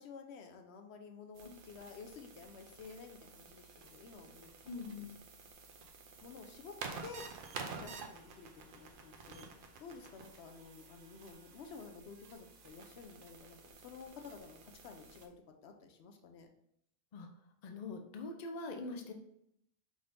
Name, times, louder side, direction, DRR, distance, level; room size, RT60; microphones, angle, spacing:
voice 1, 0.0-4.5 4.9-5.0 6.2-6.8 7.0-7.2 7.7-15.3 15.6-16.5, left 5 dB, 80° left, 5 dB, 0.9 m, -52 dB
sound 1, 1.3-15.3, right 4 dB, 60° right, 0.7 m, -51 dB
voice 2, 4.6-5.1 17.1-17.3 17.6-19.1, left 3 dB, 50° left, 4 dB, 0.6 m, -43 dB
4.9 x 3.5 x 2.6 m, 0.73 s
omnidirectional pair, 1.1 m